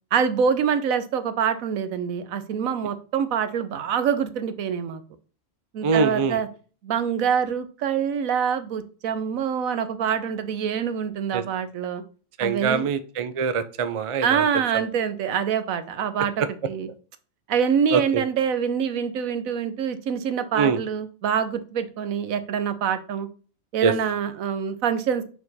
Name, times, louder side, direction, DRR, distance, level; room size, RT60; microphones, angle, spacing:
voice 1, 0.1-5.0 5.7-6.5 6.8-12.0 12.4-12.9 14.2-16.9 17.5-23.3 23.7-25.2, right 7 dB, 85° right, 11 dB, 1.2 m, -25 dB
voice 2, 5.8-6.4 11.3-11.4 12.4-14.5 17.9-18.2 20.5-20.8 23.8-23.9, right 5 dB, 55° right, 12 dB, 0.3 m, -23 dB
6.6 x 4.4 x 4.1 m, 0.39 s
omnidirectional pair, 1.4 m